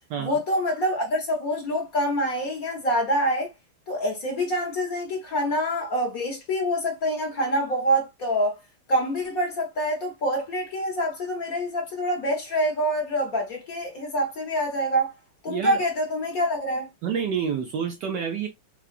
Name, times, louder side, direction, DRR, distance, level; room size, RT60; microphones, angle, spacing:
voice 1, 0.2-3.5 3.9-8.6 8.9-15.1 15.4-16.9, equal, 50° left, 1.5 m, -26 dB
voice 2, 15.5-15.8 17.0-18.5, right 7 dB, 70° right, 1.1 m, -28 dB
5.8 x 2.3 x 2.4 m
omnidirectional pair, 2.2 m